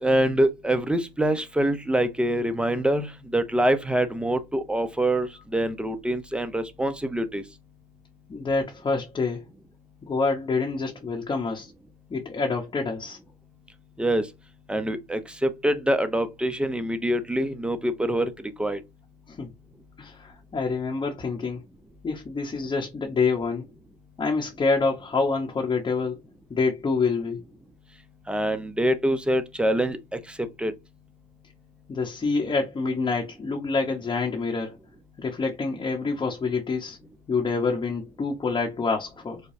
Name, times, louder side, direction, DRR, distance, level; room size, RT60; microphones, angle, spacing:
voice 1, 0.0-7.4 14.0-14.3 14.7-18.3 18.6-18.8 28.3-30.7, right 1 dB, 5° right, 0.6 m, -25 dB
voice 2, 8.3-9.4 10.0-11.7 12.1-13.2 19.3-19.5 20.0-21.6 22.0-23.7 24.2-26.2 26.5-27.4 31.9-34.8 35.2-37.0 37.3-39.4, left 4 dB, 30° left, 1.0 m, -27 dB
4.9 x 2.2 x 2.7 m
cardioid pair, 110°, 17 cm